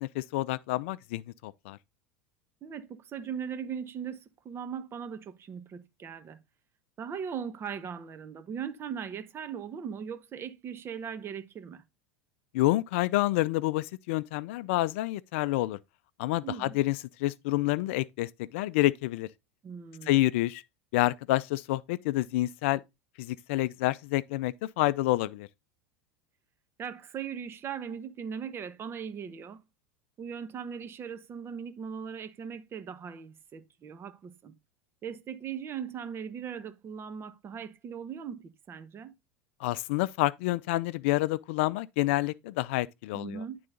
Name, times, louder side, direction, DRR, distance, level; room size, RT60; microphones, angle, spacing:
voice 1, 0.0-1.8 12.5-15.8 16.2-19.3 20.1-20.6 20.9-22.8 23.2-25.5 39.6-43.4, left 17 dB, 65° left, 0.4 m, -28 dB
voice 2, 2.6-6.4 7.0-11.8 16.4-16.8 19.6-20.2 26.8-29.6 30.2-34.5 35.0-39.1 43.1-43.6, right 7 dB, 35° right, 1.1 m, -39 dB
11.0 x 3.9 x 3.7 m
hypercardioid pair, 85°, 7 cm